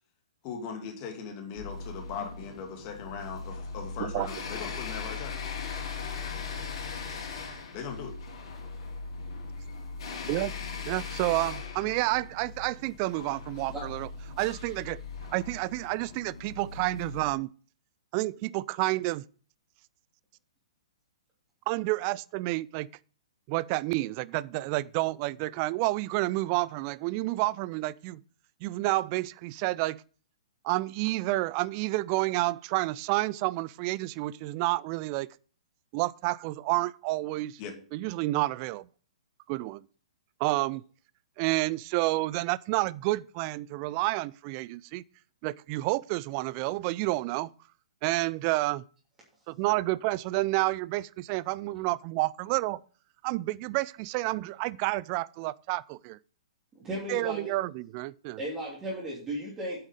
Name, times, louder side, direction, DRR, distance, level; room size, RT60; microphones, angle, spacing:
voice 1, 0.4-5.4 7.7-8.1 37.6-37.7, left 6 dB, 35° left, 2.3 m, -39 dB
sound 1, 1.5-17.2, left 5 dB, 55° left, 4.1 m, -39 dB
voice 2, 10.9-14.1 14.4-15.0 15.3-17.5 18.1-19.3 21.7-22.9 23.5-28.2 28.6-30.0 30.6-35.3 35.9-37.6 37.9-38.9 39.5-39.8 40.4-40.8 41.4-45.0 45.4-47.5 48.0-48.8 49.5-52.8 53.2-56.2 57.1-58.4, right 19 dB, 35° right, 0.4 m, -29 dB
voice 3, 56.7-57.5 58.4-59.9, right 1 dB, 15° right, 3.1 m, -35 dB
8.7 x 7.3 x 5.1 m
figure-of-eight pair, 115°, 3 cm